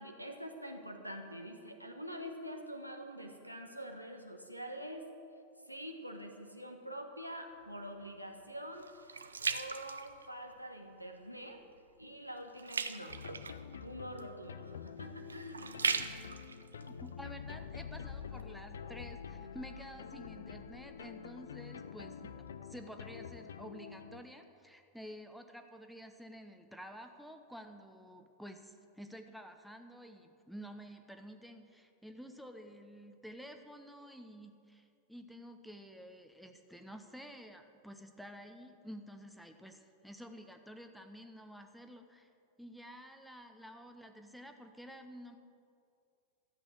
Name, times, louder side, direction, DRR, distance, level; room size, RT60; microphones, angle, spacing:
voice 1, 0.0-5.1 5.6-8.9 9.5-11.6 12.0-13.2 13.8-15.8, equal, 90° right, 3 dB, 1.2 m, -45 dB
sound 1, 7.5-10.8 11.2-11.6 11.9-17.8 18.4-18.5, right 5 dB, 75° right, 0.6 m, -39 dB
sound 2, 13.1-24.2, left 7 dB, 65° left, 0.5 m, -47 dB
voice 2, 16.8-42.3 42.6-45.4, equal, ahead, 5 dB, 0.9 m, -51 dB
13.0 x 8.1 x 7.6 m, 2.4 s
figure-of-eight pair, 90°, 0 cm